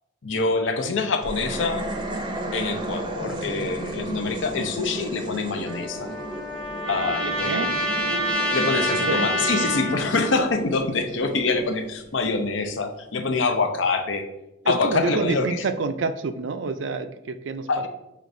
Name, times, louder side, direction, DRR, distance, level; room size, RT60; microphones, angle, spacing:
voice 1, 0.2-1.8 2.5-6.1 6.9-7.7 8.5-14.2 14.7-15.4 17.7-17.9, left 3 dB, 80° left, 6 dB, 0.6 m, -25 dB
sound 1, 1.2-12.6, right 1 dB, 25° right, 0.5 m, -34 dB
Trumpet, 5.7-10.5, equal, 5° left, 0.7 m, -27 dB
voice 2, 14.6-17.7, right 4 dB, 75° right, 10 dB, 0.4 m, -27 dB
6.3 x 3.2 x 2.6 m, 0.92 s
head